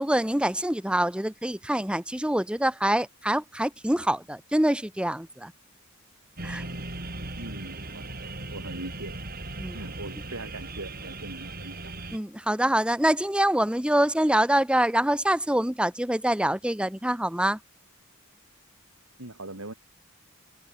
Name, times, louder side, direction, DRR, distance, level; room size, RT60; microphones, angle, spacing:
voice 1, 0.0-5.5 6.4-6.6 9.6-9.8 12.1-17.6, right 1 dB, 5° right, 1.0 m, -25 dB
sound 1, 6.4-12.2, right 2 dB, 45° right, 7.5 m, -38 dB
voice 2, 7.4-9.2 9.7-11.9 19.2-19.7, right 2 dB, 75° right, 4.8 m, -41 dB
open air
head